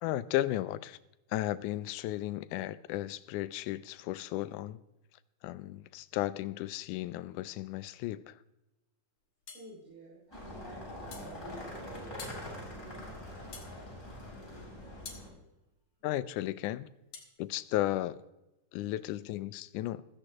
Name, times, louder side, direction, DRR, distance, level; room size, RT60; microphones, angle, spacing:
voice 1, 0.0-1.0 1.3-4.8 5.4-8.4 16.0-16.9 17.4-18.2 18.7-20.1, left 15 dB, 80° left, 1.9 m, -34 dB
sound 1, 9.5-9.7 11.1-11.3 12.2-12.4 13.5-13.7 15.0-15.3 17.1-17.3, left 6 dB, 55° left, 2.6 m, -46 dB
voice 2, 9.5-13.6 18.8-19.0, right 1 dB, 65° right, 7.2 m, -53 dB
sound 2, 10.3-15.3, left 1 dB, 5° left, 3.7 m, -44 dB
15.5 x 14.5 x 2.9 m
omnidirectional pair, 3.8 m